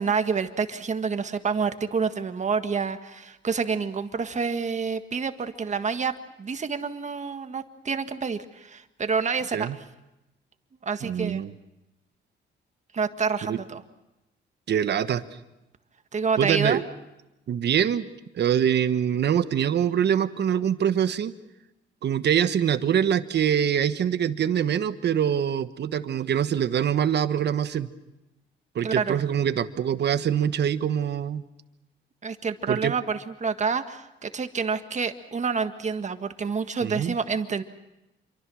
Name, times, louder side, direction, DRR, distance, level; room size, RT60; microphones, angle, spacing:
voice 1, 0.0-6.1 6.4-9.8 10.8-11.5 12.9-13.8 16.1-16.8 28.8-29.2 32.2-37.6, right 5 dB, 35° right, 8 dB, 1.7 m, -28 dB
voice 2, 11.0-11.5 13.5-13.6 14.7-15.2 16.4-16.8 17.5-18.1 18.3-21.3 22.0-27.9 28.7-31.4 32.7-32.9 36.8-37.1, right 9 dB, 60° right, 12 dB, 1.2 m, -24 dB
27.0 x 24.0 x 6.3 m, 0.94 s
cardioid pair, 90°, 20 cm